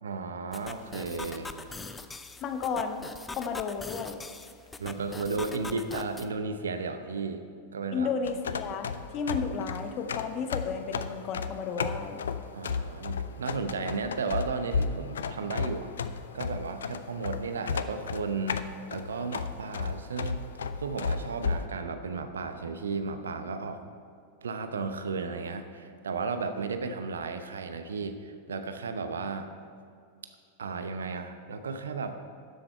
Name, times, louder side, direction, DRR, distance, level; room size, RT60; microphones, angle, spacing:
voice 1, 0.0-1.5 4.8-7.4 7.7-8.1 12.5-15.9 16.3-18.6 18.9-20.4 20.8-23.8 24.4-29.5 30.6-32.2, right 4 dB, 70° right, 8 dB, 0.7 m, -34 dB
sound 1, 0.5-6.3, left 3 dB, 10° left, 0.5 m, -42 dB
voice 2, 2.4-3.0 3.4-4.2 7.9-12.2, left 5 dB, 35° left, 7 dB, 0.9 m, -33 dB
sound 2, 8.2-21.7, left 5 dB, 65° left, 0.4 m, -34 dB
12.0 x 7.8 x 4.4 m, 2.3 s
figure-of-eight pair, 90°, 0 cm